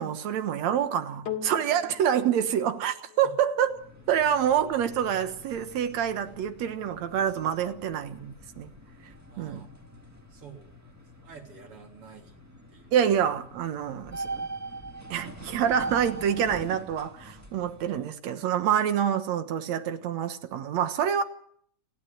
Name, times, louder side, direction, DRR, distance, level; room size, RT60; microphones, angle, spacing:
voice 1, 0.0-3.7 4.1-8.7 9.4-9.7 12.9-14.4 15.1-21.2, right 9 dB, 65° right, 2.4 m, -27 dB
sound 1, 1.3-9.8 10.5-10.6, left 9 dB, 60° left, 3.4 m, -45 dB
sound 2, 3.6-18.1, right 2 dB, 10° right, 1.0 m, -42 dB
voice 2, 9.3-9.8 10.3-12.4 12.7-12.9, right 6 dB, 45° right, 4.0 m, -49 dB
28.0 x 12.0 x 9.2 m
omnidirectional pair, 3.5 m